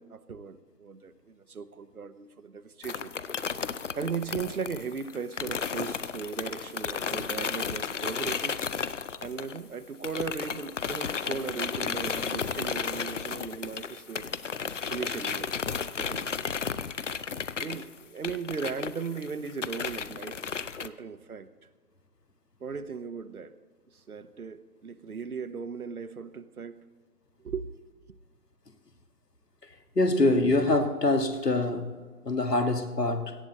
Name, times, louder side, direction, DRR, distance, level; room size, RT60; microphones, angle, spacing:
voice 1, 0.0-3.1 3.9-8.6 9.2-14.3 14.9-16.3 17.6-20.4 20.8-21.5 22.6-23.5 23.9-26.9 27.4-27.7, right 5 dB, 70° right, 1.0 m, -37 dB
sound 1, 2.8-9.7 10.0-20.9, left 6 dB, 50° left, 0.6 m, -33 dB
voice 2, 30.0-31.9 32.3-33.4, left 2 dB, 90° left, 1.9 m, -24 dB
18.0 x 14.0 x 4.0 m
figure-of-eight pair, 155°, 47 cm